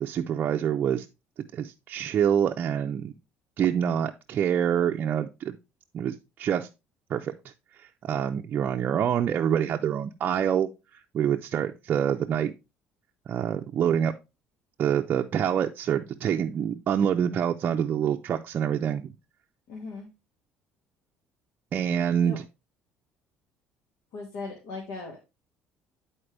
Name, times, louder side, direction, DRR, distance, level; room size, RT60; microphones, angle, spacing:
voice 1, 0.0-1.1 1.5-3.1 3.6-5.6 5.9-6.7 7.1-7.3 7.8-10.7 11.1-12.5 13.3-14.1 14.8-19.1 21.7-22.4, right 9 dB, 40° right, 3 dB, 0.4 m, -26 dB
voice 2, 19.7-20.1 22.3-22.4 24.1-25.2, left 3 dB, 85° left, -1 dB, 1.8 m, -38 dB
10.0 x 4.3 x 3.3 m, 0.26 s
cardioid pair, 140°, 4 cm